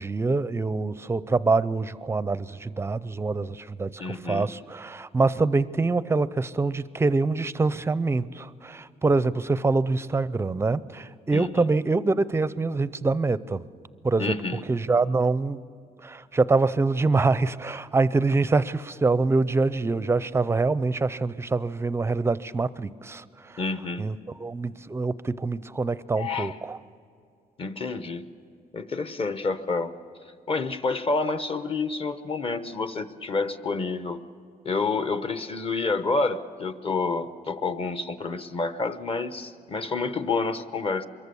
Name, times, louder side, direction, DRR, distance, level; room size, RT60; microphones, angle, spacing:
voice 1, 0.0-13.6 14.0-14.4 14.7-15.6 16.0-23.2 24.0-26.8, right 3 dB, 15° right, 17 dB, 0.5 m, -25 dB
voice 2, 4.0-4.5 11.3-11.6 14.2-14.6 23.6-24.0 26.2-26.5 27.6-28.2 28.7-29.9 30.5-34.2 34.6-41.1, left 3 dB, 35° left, 11 dB, 1.0 m, -28 dB
25.0 x 22.5 x 7.0 m, 2.4 s
cardioid pair, 135°, 16 cm